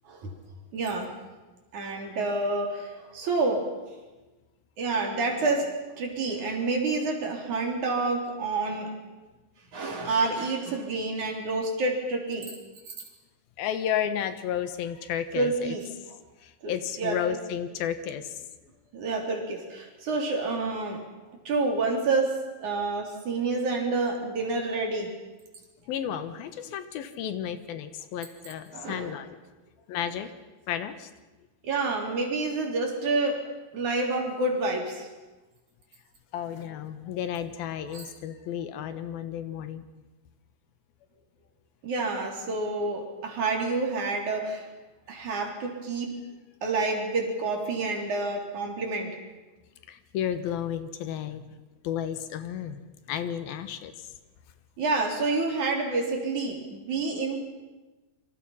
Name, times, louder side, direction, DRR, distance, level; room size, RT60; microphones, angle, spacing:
voice 1, 0.7-1.1 1.7-3.7 4.8-8.9 9.7-12.5 12.9-13.0 15.3-15.9 16.6-16.7 17.0-17.4 18.9-21.0 21.4-25.1 28.7-29.2 31.6-33.5 33.7-35.1 37.9-38.0 41.8-44.7 45.1-46.2 46.6-49.2 54.8-57.4, right 3 dB, 55° right, 2 dB, 4.7 m, -28 dB
voice 2, 13.6-15.7 16.4-18.3 25.9-29.4 29.9-30.3 30.7-31.1 36.3-39.8 49.9-51.4 51.8-52.8 53.1-53.9, left 9 dB, 80° left, 10 dB, 3.1 m, -32 dB
27.0 x 25.0 x 5.7 m, 1.2 s
omnidirectional pair, 4.2 m